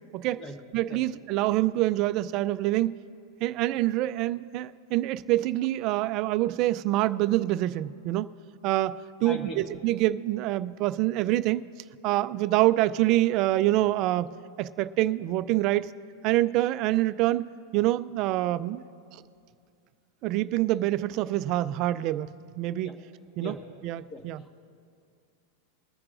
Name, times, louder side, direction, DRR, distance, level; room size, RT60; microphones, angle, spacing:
voice 1, 0.7-3.0 3.4-8.3 8.6-11.6 12.0-14.3 14.6-15.9 16.2-17.4 17.7-18.8 19.1-19.2 20.2-22.3 22.6-22.9 23.4-23.6 23.8-24.4, right 16 dB, 40° right, 14 dB, 0.4 m, -26 dB
voice 2, 9.2-9.6 22.8-22.9 23.4-23.6 24.1-24.2, equal, 25° left, 3 dB, 1.5 m, -37 dB
22.5 x 9.4 x 2.5 m, 2.4 s
supercardioid pair, 145°, 0 cm